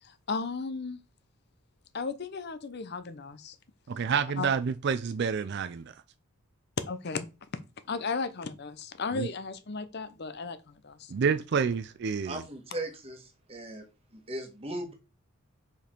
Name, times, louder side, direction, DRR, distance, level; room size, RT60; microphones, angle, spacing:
voice 1, 0.3-1.0 1.9-3.6 4.4-4.5 6.9-7.3 7.9-10.6 10.8-11.1, left 4 dB, 50° left, 0.6 m, -35 dB
voice 2, 3.9-5.9 9.1-9.3 11.1-12.4, right 6 dB, 50° right, 0.3 m, -28 dB
voice 3, 12.2-13.8 14.1-14.9, right 1 dB, 25° right, 1.4 m, -38 dB
5.2 x 4.8 x 4.4 m
head